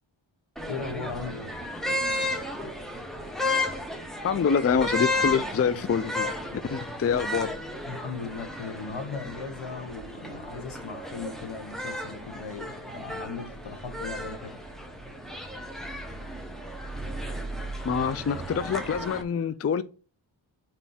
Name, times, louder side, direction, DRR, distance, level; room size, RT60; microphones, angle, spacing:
sound 1, 0.6-19.2, left 1 dB, ahead, 1.2 m, -34 dB
voice 1, 0.7-1.6 7.9-14.6, left 4 dB, 80° left, 1.2 m, -38 dB
voice 2, 4.2-7.5 17.8-19.8, left 6 dB, 35° left, 0.4 m, -26 dB
4.5 x 4.2 x 5.7 m
cardioid pair, 50°, 47 cm